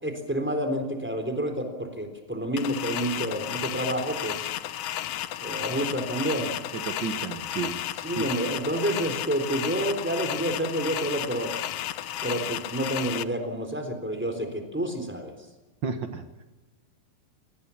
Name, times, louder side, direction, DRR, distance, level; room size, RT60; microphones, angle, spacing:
voice 1, 0.0-4.5 5.4-6.5 8.0-11.5 12.2-15.3, right 1 dB, 5° right, 5 dB, 3.4 m, -29 dB
sound 1, 2.6-13.2, left 12 dB, 80° left, 1.5 m, -33 dB
voice 2, 6.7-7.8 15.8-16.2, right 5 dB, 85° right, 7 dB, 1.0 m, -32 dB
28.0 x 19.0 x 7.3 m, 1.2 s
omnidirectional pair, 4.2 m